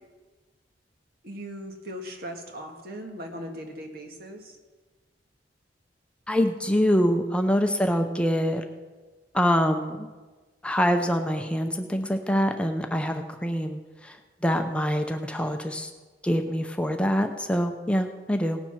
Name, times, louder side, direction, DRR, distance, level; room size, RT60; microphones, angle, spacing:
voice 1, 1.2-4.6, equal, 60° right, 3 dB, 1.9 m, -39 dB
voice 2, 6.3-8.6 9.3-10.1 10.6-14.2 14.4-15.9 16.2-18.6, equal, 5° left, 5 dB, 0.6 m, -25 dB
18.0 x 7.3 x 5.8 m, 1.3 s
head